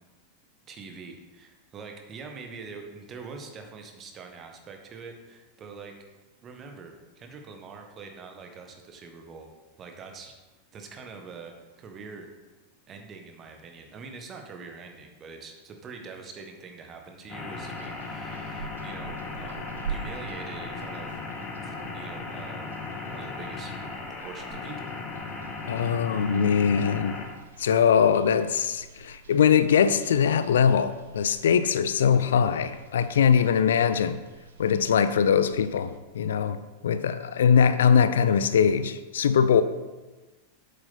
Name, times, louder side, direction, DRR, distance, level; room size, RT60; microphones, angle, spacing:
voice 1, 0.7-5.9 6.4-9.5 9.8-10.3 10.7-12.3 12.9-21.2 21.6-22.7 23.1-23.7 24.1-24.9, right 4 dB, 25° right, 3 dB, 1.4 m, -44 dB
sound 1, 17.3-27.3, left 3 dB, 30° left, 1.7 m, -37 dB
sound 2, 17.5-36.0, right 6 dB, 65° right, 0.8 m, -46 dB
voice 2, 25.7-27.2 27.6-34.2 34.6-39.6, left 7 dB, 60° left, 14 dB, 0.4 m, -22 dB
8.4 x 7.8 x 4.2 m, 1.2 s
figure-of-eight pair, 90°, 0 cm